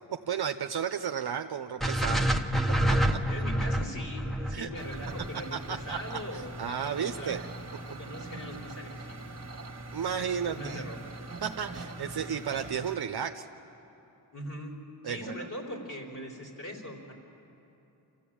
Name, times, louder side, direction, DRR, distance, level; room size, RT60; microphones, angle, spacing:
voice 1, 0.2-2.3 2.9-3.2 4.5-4.7 5.5-6.2 6.6-7.4 9.9-10.8 11.4-13.4 15.0-15.5, right 7 dB, 65° right, 6 dB, 0.8 m, -33 dB
sound 1, 1.8-6.0, equal, ahead, 0.9 m, -28 dB
voice 2, 2.1-2.5 3.3-7.4 7.9-9.7 10.5-11.0 14.3-14.7 15.0-17.1, equal, 45° left, -1 dB, 4.0 m, -41 dB
sound 2, 4.7-13.0, right 2 dB, 40° right, 1.6 m, -42 dB
27.5 x 14.0 x 8.7 m, 2.9 s
wide cardioid pair, 105°, 41 cm